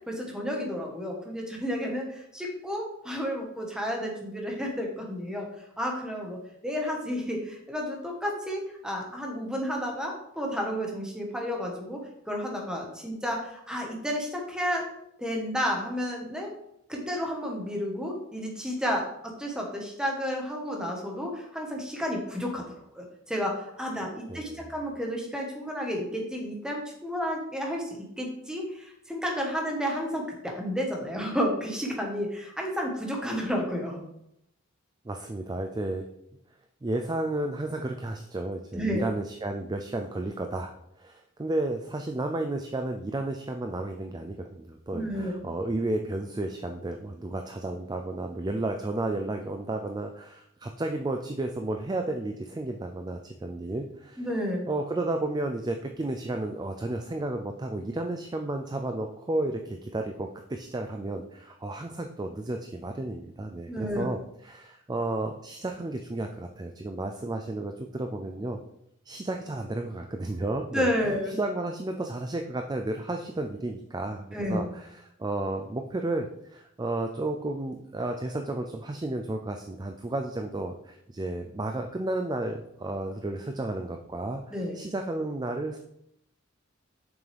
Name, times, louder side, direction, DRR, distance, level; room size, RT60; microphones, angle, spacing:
voice 1, 0.1-5.5 5.8-14.9 15.2-16.5 16.9-22.6 22.9-34.0 38.7-39.0 44.9-45.4 54.2-54.6 63.7-64.1 70.7-71.3 74.3-74.6 84.5-84.8, equal, 5° right, 0 dB, 1.3 m, -31 dB
voice 2, 24.3-24.6 35.0-36.1 36.8-54.2 54.7-68.6 69.0-85.8, right 2 dB, 20° right, 4 dB, 0.4 m, -32 dB
7.3 x 6.1 x 3.4 m, 0.77 s
head